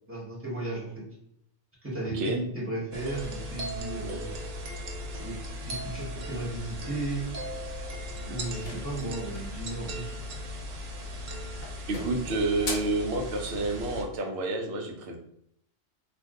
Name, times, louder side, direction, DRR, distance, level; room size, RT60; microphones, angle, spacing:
voice 1, 0.1-1.0 1.8-4.3 5.2-5.4 5.6-7.3 8.3-10.1, right 2 dB, 10° right, -5 dB, 1.0 m, -35 dB
sound 1, 2.9-14.0, equal, 90° right, 1.0 m, -37 dB
sound 2, 8.4-9.6 10.9-11.3 11.6-13.1, left 2 dB, 50° left, 0.6 m, -39 dB
voice 2, 11.9-15.2, right 2 dB, 60° right, 3 dB, 0.8 m, -29 dB
2.5 x 2.3 x 3.6 m, 0.72 s
omnidirectional pair, 1.3 m